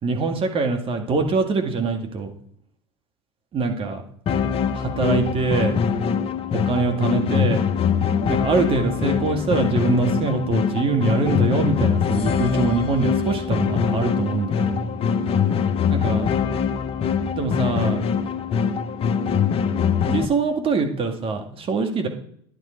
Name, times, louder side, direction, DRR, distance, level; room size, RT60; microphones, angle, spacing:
voice 1, 0.0-2.3 3.5-4.0 4.7-5.7 6.5-7.6 8.3-14.9 15.9-16.3 17.4-18.0 20.1-22.1, right 4 dB, 35° right, 4 dB, 1.9 m, -23 dB
sound 1, 4.3-20.3, left 7 dB, 35° left, 0.8 m, -23 dB
10.5 x 8.3 x 4.5 m, 0.65 s
hypercardioid pair, 80°, 15 cm